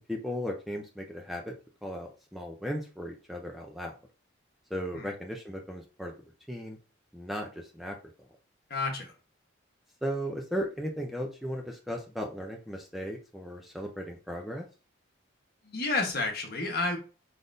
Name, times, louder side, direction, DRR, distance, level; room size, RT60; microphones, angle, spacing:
voice 1, 0.1-1.5 1.8-3.9 4.7-6.1 6.5-6.8 7.1-8.0 10.0-14.7, equal, ahead, 1 dB, 0.5 m, -36 dB
voice 2, 8.7-9.1 15.6-17.0, left 3 dB, 50° left, 2 dB, 1.2 m, -30 dB
5.0 x 4.0 x 2.6 m, 0.35 s
head